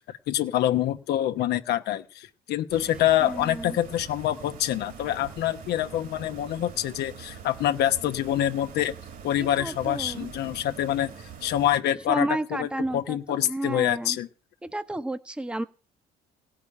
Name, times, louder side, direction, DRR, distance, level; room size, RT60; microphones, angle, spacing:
voice 1, 0.0-8.9 9.2-11.1 11.4-14.3, left 12 dB, 75° left, 9 dB, 1.1 m, -26 dB
sound 1, 2.7-11.8, right 7 dB, 55° right, 2.4 m, -44 dB
voice 2, 3.2-3.8 9.4-10.6 12.1-14.2 14.6-15.6, right 1 dB, 5° right, 10 dB, 1.0 m, -32 dB
17.0 x 6.0 x 9.8 m, 0.35 s
cardioid pair, 110°, 17 cm